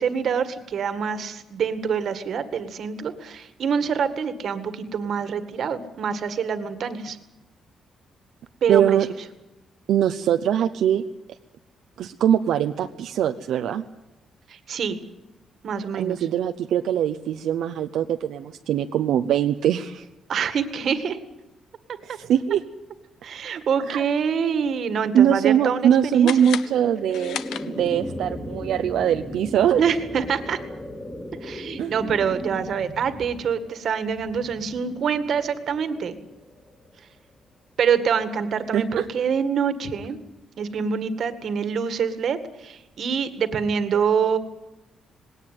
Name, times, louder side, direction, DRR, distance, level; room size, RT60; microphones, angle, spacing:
voice 1, 0.0-7.2 8.6-9.0 14.5-15.0 15.6-16.2 20.3-21.2 22.1-22.2 23.2-26.5 29.8-30.6 31.4-36.2 37.8-40.2 40.6-44.4, right 6 dB, 50° right, 11 dB, 1.9 m, -25 dB
voice 2, 8.7-9.1 9.9-11.0 12.0-13.8 16.0-20.1 22.0-22.6 23.9-24.0 25.1-27.4 27.7-29.8 31.8-31.9 38.7-39.0, right 9 dB, 75° right, 6 dB, 0.8 m, -22 dB
sound 1, 26.2-28.1, left 10 dB, 85° left, 1.0 m, -35 dB
sound 2, 26.3-37.4, left 1 dB, 15° left, 2.5 m, -37 dB
20.0 x 18.0 x 9.2 m, 0.97 s
cardioid pair, 165°, 0 cm